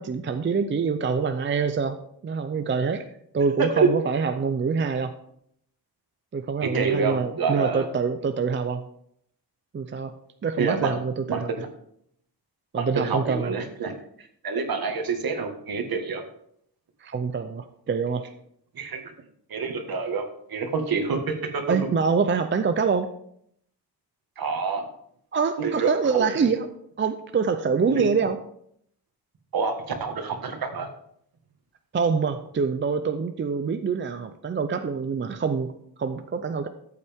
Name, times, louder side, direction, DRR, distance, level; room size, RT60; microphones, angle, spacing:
voice 1, 0.0-3.1 3.3-5.1 6.3-8.8 9.7-10.1 10.4-11.5 12.7-13.5 17.0-18.3 21.7-23.1 25.3-26.7 27.0-28.4 31.9-36.7, right 5 dB, 30° right, 8 dB, 0.5 m, -25 dB
voice 2, 3.6-3.9 6.6-7.9 10.6-11.0 11.3-11.7 12.8-13.9 14.2-16.2 18.7-19.0 19.5-21.8 24.4-24.8 25.6-26.5 27.9-28.0 29.5-30.9, right 4 dB, 60° right, 5 dB, 1.7 m, -27 dB
14.0 x 8.3 x 3.5 m, 0.70 s
wide cardioid pair, 180°, 40 cm